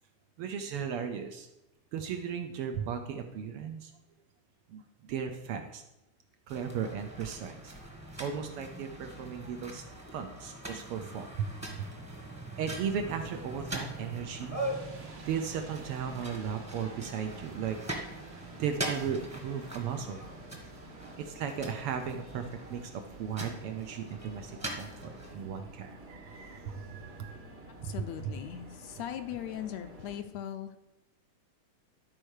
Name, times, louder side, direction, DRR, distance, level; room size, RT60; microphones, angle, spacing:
voice 1, 0.4-1.5 1.9-3.9 4.7-5.8 6.5-7.7 8.2-11.5 11.8-11.9 12.6-14.6 15.3-17.8 18.6-20.2 21.2-27.5 27.8-27.9 28.2-28.3, right 7 dB, 75° right, 6 dB, 1.3 m, -36 dB
sound 1, 6.5-25.3, right 1 dB, 10° right, 0.8 m, -42 dB
sound 2, 13.1-30.2, right 2 dB, 40° right, 0.8 m, -50 dB
voice 2, 27.8-30.8, left 10 dB, 75° left, 8 dB, 1.7 m, -39 dB
12.0 x 4.5 x 6.4 m, 0.93 s
omnidirectional pair, 3.3 m